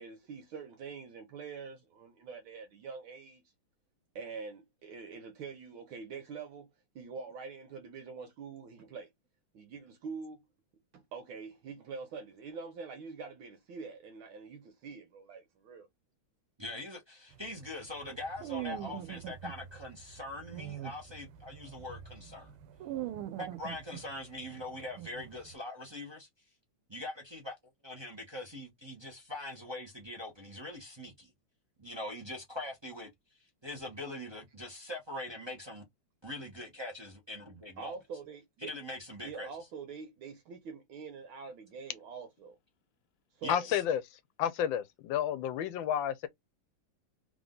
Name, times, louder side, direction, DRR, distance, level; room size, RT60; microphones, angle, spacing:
voice 1, 0.0-3.4 4.2-6.7 7.0-9.1 9.5-10.4 10.9-15.9 37.8-38.7 39.2-42.6 43.4-43.7, right 5 dB, 75° right, 1.7 m, -45 dB
voice 2, 16.6-22.5 23.4-26.3 26.9-27.5 27.8-31.3 31.8-33.1 33.6-35.8 36.2-37.9 38.7-39.5 43.4-43.6, left 1 dB, 20° right, 0.7 m, -42 dB
sound 1, 17.3-25.5, right 12 dB, 90° right, 1.5 m, -43 dB
voice 3, 43.5-44.0 44.4-46.3, left 9 dB, 75° left, 1.3 m, -31 dB
3.7 x 3.3 x 3.8 m
omnidirectional pair, 2.3 m